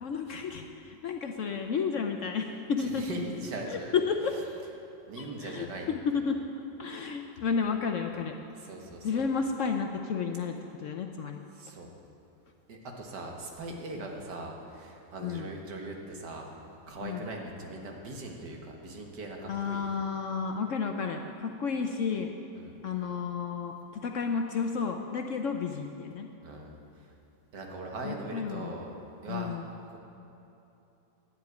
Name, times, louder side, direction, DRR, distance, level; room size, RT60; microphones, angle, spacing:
voice 1, 0.0-3.1 3.7-4.3 5.2-6.4 6.8-8.3 9.0-11.4 14.0-14.1 15.2-15.5 17.0-17.2 19.5-22.3 22.8-26.3 28.0-28.8 29.3-29.7, left 5 dB, 60° left, 4 dB, 0.8 m, -32 dB
voice 2, 2.8-4.0 5.1-5.9 8.6-9.3 11.6-11.9 12.7-16.5 16.9-19.9 22.5-22.8 26.4-27.1 27.5-28.9 29.2-29.6 29.9-30.0, right 2 dB, 75° right, 1 dB, 2.0 m, -40 dB
10.5 x 7.9 x 9.2 m, 3.0 s
omnidirectional pair, 1.8 m